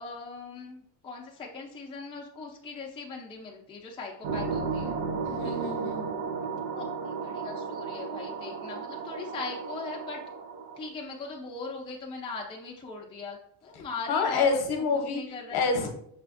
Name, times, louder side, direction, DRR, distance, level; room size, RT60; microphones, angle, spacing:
voice 1, 0.0-5.0 5.4-5.8 6.7-6.9 7.2-10.2 10.8-14.6 15.1-15.6, left 4 dB, 10° left, -2 dB, 0.4 m, -40 dB
sound 1, 4.2-10.9, right 5 dB, 75° right, 0.6 m, -34 dB
voice 2, 5.2-6.1 14.1-15.2 15.5-15.9, left 4 dB, 50° left, 4 dB, 0.8 m, -27 dB
5.6 x 2.4 x 2.4 m, 0.67 s
cardioid pair, 150°, 48 cm